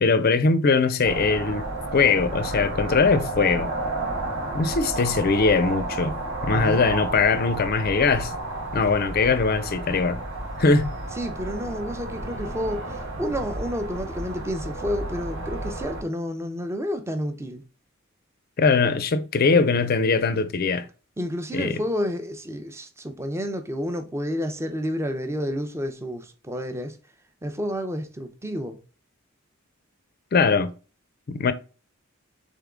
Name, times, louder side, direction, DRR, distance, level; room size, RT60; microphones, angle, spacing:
voice 1, 0.0-3.7 4.5-8.3 8.7-10.2 10.6-10.9 18.6-20.9 21.5-21.8 30.3-30.7 31.3-31.5, left 4 dB, 45° left, 0.4 m, -21 dB
sound 1, 1.0-16.0, right 2 dB, 65° right, 1.2 m, -32 dB
voice 2, 6.5-6.8 11.2-12.9 13.2-17.6 21.2-27.0 27.4-28.8, equal, 15° right, 0.5 m, -30 dB
3.8 x 3.6 x 3.6 m
head